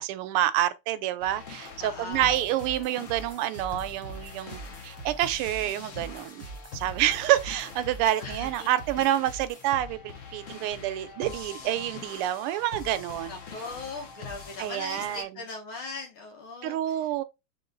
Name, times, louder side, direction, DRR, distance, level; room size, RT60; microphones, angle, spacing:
voice 1, 0.0-6.5 6.7-13.4 14.6-15.3 16.6-17.2, right 13 dB, 85° right, 1.5 m, -28 dB
sound 1, 1.2-15.2, left 5 dB, 55° left, 0.9 m, -44 dB
voice 2, 1.8-2.5 8.2-8.7 13.2-17.1, left 3 dB, 75° left, 1.9 m, -39 dB
sound 2, 2.1-9.7, right 3 dB, 15° left, 0.5 m, -44 dB
3.8 x 3.5 x 3.7 m
omnidirectional pair, 2.4 m